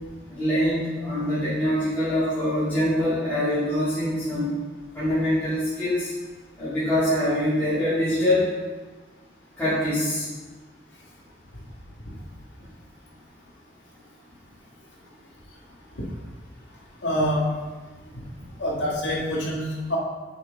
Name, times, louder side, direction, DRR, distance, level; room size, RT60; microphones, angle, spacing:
voice 1, 0.3-4.5 4.9-6.1 6.6-8.4 9.6-10.3, left 1 dB, 10° left, -16 dB, 2.2 m, -24 dB
voice 2, 17.0-17.5 18.1-18.2 18.6-20.0, equal, 85° left, -3 dB, 1.7 m, -26 dB
6.4 x 6.3 x 3.6 m, 1.3 s
head